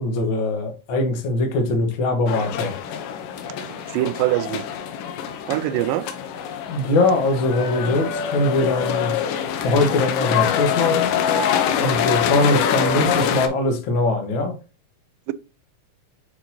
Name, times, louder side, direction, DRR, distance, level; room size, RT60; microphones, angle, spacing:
voice 1, 0.0-2.7 6.7-9.2 9.6-11.2 11.8-14.6, left 2 dB, 60° left, 1.3 m, -22 dB
sound 1, 2.3-13.5, left 8 dB, 75° left, 2.4 m, -24 dB
voice 2, 3.6-4.6 5.5-6.1 10.3-10.4 11.9-12.1 15.3-15.4, right 15 dB, 80° right, 2.2 m, -24 dB
8.7 x 4.0 x 2.7 m
omnidirectional pair, 4.0 m